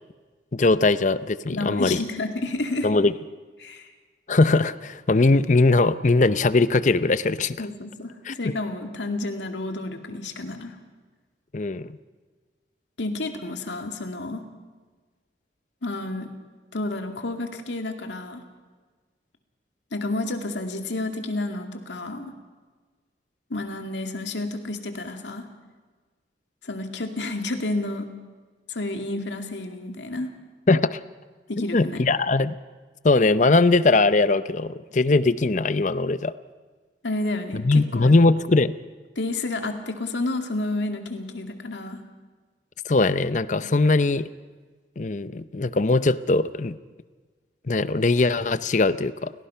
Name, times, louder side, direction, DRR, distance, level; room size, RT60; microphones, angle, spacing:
voice 1, 0.5-2.0 2.8-3.1 4.3-7.6 8.3-8.5 11.5-11.9 30.7-31.0 31.6-32.6 33.0-36.3 37.6-38.7 42.9-44.2 45.0-46.8 47.7-49.3, left 3 dB, 45° left, 15 dB, 0.6 m, -20 dB
voice 2, 1.5-2.9 3.6-3.9 7.6-10.8 13.0-14.4 15.8-16.3 16.7-18.4 19.9-22.3 23.5-25.5 26.6-28.1 28.7-30.3 31.5-32.0 37.0-38.1 39.2-42.0 43.6-43.7, left 2 dB, 80° left, 5 dB, 2.3 m, -30 dB
30.0 x 17.5 x 5.7 m, 1.4 s
head